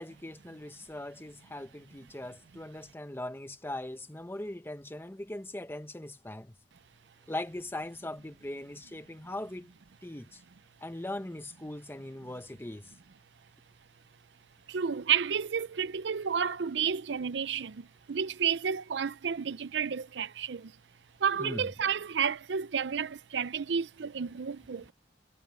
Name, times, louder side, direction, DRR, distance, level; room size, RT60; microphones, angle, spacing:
voice 1, 0.0-6.5 7.3-9.7 10.0-10.4 10.8-12.9 21.4-21.7, left 1 dB, 15° left, 1.0 m, -40 dB
voice 2, 14.7-20.7 21.2-24.9, right 7 dB, 70° right, 0.5 m, -31 dB
head